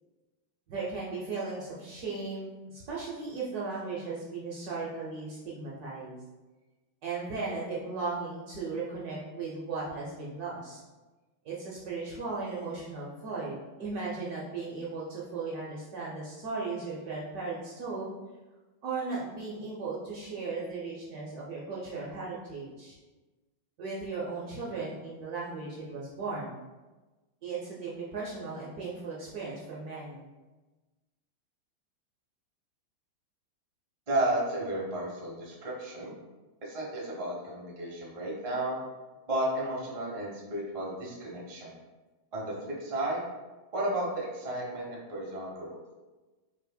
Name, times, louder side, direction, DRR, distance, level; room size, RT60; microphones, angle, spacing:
voice 1, 0.7-6.2 7.0-10.8 11.4-18.1 18.8-23.0 23.8-26.6 27.4-30.2, right 4 dB, 65° right, -5 dB, 1.0 m, -36 dB
voice 2, 34.1-36.2 36.6-38.8 39.3-41.7 42.3-43.3 43.7-45.8, right 1 dB, 45° right, -4 dB, 0.4 m, -33 dB
5.4 x 3.3 x 2.2 m, 1.2 s
omnidirectional pair, 2.3 m